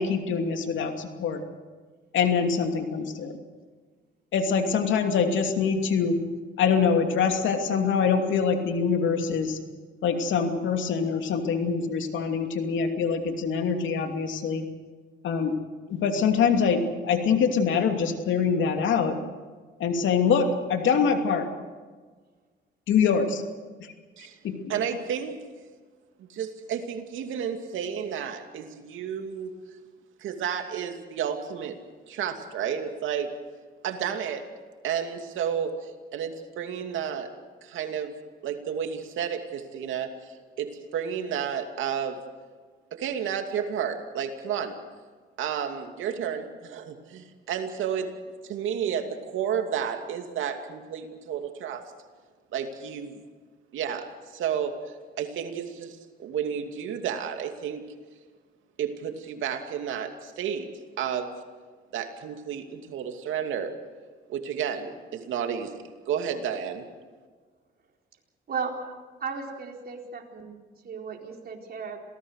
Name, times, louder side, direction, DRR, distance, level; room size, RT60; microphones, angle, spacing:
voice 1, 0.0-1.4 2.1-3.3 4.3-6.2 6.6-9.6 10.0-14.6 15.2-15.5 15.9-19.2 19.8-21.5 22.9-23.4 24.4-24.7, left 6 dB, 75° left, 5 dB, 2.7 m, -24 dB
voice 2, 24.7-25.4 26.2-29.5 30.2-31.8 32.1-33.3 33.8-34.5 34.8-37.3 37.6-38.2 38.4-42.2 42.9-44.7 45.4-48.1 48.4-51.8 52.5-53.2 53.7-54.1 54.3-57.8 58.8-60.7 61.0-61.3 61.9-63.7 64.3-65.8 66.1-66.8, right 8 dB, 80° right, 5 dB, 2.6 m, -31 dB
voice 3, 68.5-68.9 69.2-70.6 70.8-72.0, right 5 dB, 50° right, 0 dB, 4.3 m, -35 dB
27.0 x 18.0 x 6.6 m, 1.4 s
cardioid pair, 90°, 20 cm